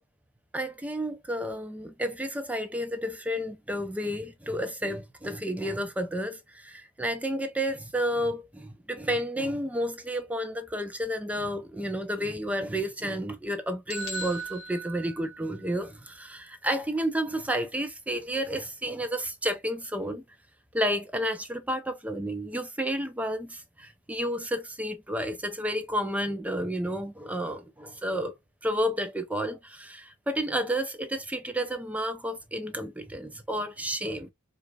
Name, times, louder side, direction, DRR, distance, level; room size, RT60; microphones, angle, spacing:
voice 1, 0.5-20.2 20.7-28.3 28.6-34.3, equal, 5° right, 0.5 m, -31 dB
sound 1, 13.9-15.8, right 2 dB, 60° left, 1.3 m, -38 dB
4.9 x 2.5 x 2.2 m
head